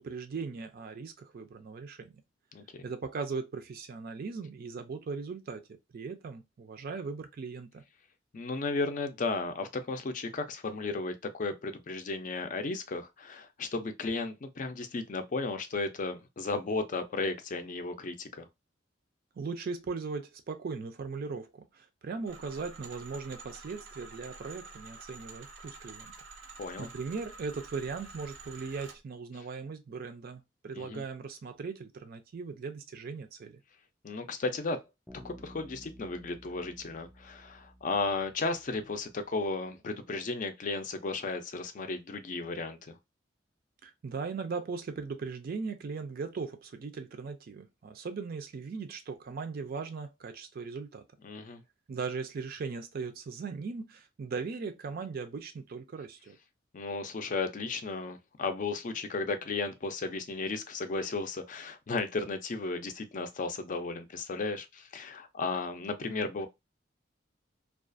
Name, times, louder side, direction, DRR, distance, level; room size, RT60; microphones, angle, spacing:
voice 1, 0.0-2.1 2.8-5.6 5.9-7.8 19.4-26.1 26.5-33.6 43.8-51.0 51.9-56.4, right 4 dB, 55° right, 0.4 m, -38 dB
voice 2, 2.5-2.8 8.3-18.5 26.6-26.9 30.7-31.0 34.0-34.8 35.2-43.0 51.2-51.6 56.7-66.5, left 3 dB, 45° left, 0.4 m, -34 dB
sound 1, 22.3-29.0, right 3 dB, 90° right, 0.6 m, -49 dB
Bass guitar, 35.1-38.8, equal, ahead, 0.6 m, -53 dB
2.3 x 2.3 x 2.4 m
head